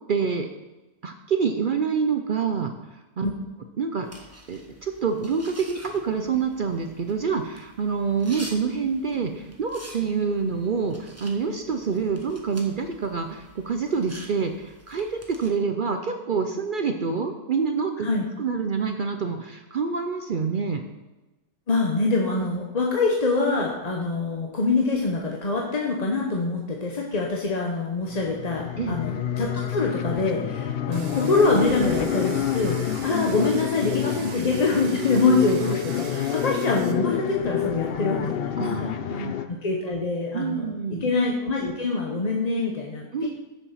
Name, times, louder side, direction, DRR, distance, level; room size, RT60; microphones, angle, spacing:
voice 1, 0.1-0.5 1.0-2.7 3.2-3.3 3.8-4.1 4.5-18.1 18.4-20.8 28.8-29.0 38.6-39.3 40.3-41.1 43.1-43.3, right 5 dB, 65° right, 6 dB, 0.5 m, -27 dB
sound 1, 4.0-15.5, right 1 dB, 10° right, 1.0 m, -47 dB
voice 2, 21.7-43.1, left 3 dB, 35° left, -1 dB, 0.8 m, -25 dB
sound 2, 28.1-39.4, left 9 dB, 65° left, 0.6 m, -28 dB
Domestic sounds home sounds, 30.9-36.9, right 7 dB, 80° right, 1.4 m, -43 dB
7.4 x 7.0 x 5.7 m, 1.1 s
omnidirectional pair, 1.6 m